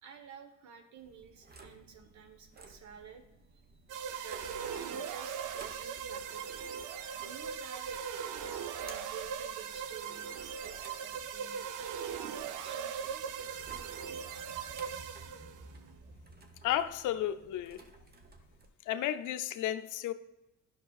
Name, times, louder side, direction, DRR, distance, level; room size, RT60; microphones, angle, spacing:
voice 1, 0.0-3.2 4.2-6.4 7.1-11.6 12.4-13.2, right 7 dB, 70° right, 1.1 m, -51 dB
sound 1, 1.0-18.7, right 2 dB, 30° right, 1.0 m, -55 dB
sound 2, 3.9-15.7, right 7 dB, 85° right, 0.6 m, -39 dB
voice 2, 16.6-17.8 18.9-20.1, left 12 dB, 80° left, 0.5 m, -33 dB
10.5 x 5.9 x 2.4 m
cardioid pair, 90°, 30 cm